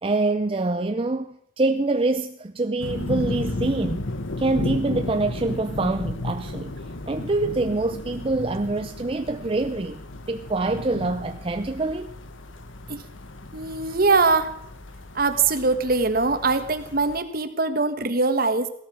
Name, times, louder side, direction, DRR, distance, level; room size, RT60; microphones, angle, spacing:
voice 1, 0.0-4.0 4.4-6.7 7.1-10.0 10.3-12.1, right 2 dB, 30° right, 0.6 m, -25 dB
sound 1, 2.8-17.2, left 2 dB, 85° left, 1.4 m, -34 dB
voice 2, 13.5-14.5 15.1-18.7, right 3 dB, 50° right, 1.4 m, -22 dB
17.0 x 13.0 x 6.3 m
head